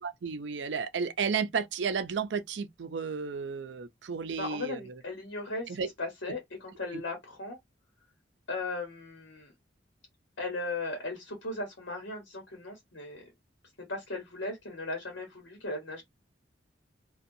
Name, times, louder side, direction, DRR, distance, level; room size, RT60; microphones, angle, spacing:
voice 1, 0.0-5.0 5.7-5.9, right 6 dB, 75° right, 0.4 m, -33 dB
voice 2, 4.3-7.6 8.5-9.5 10.4-13.3 13.9-16.0, left 2 dB, 80° left, 1.0 m, -37 dB
2.6 x 2.3 x 2.5 m
head